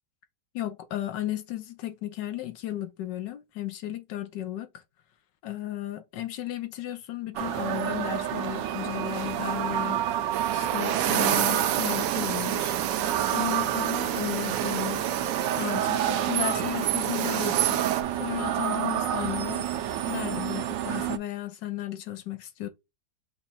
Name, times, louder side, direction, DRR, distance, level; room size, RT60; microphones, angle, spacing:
voice 1, 0.5-4.7 5.4-10.0 10.5-12.7 13.3-15.0 15.5-17.8 18.2-19.7 20.1-22.7, left 13 dB, 80° left, 1.4 m, -34 dB
sound 1, 7.4-21.2, right 11 dB, 85° right, 1.3 m, -29 dB
sound 2, 10.3-18.0, right 11 dB, 70° right, 0.8 m, -30 dB
5.3 x 2.4 x 4.0 m
omnidirectional pair, 1.9 m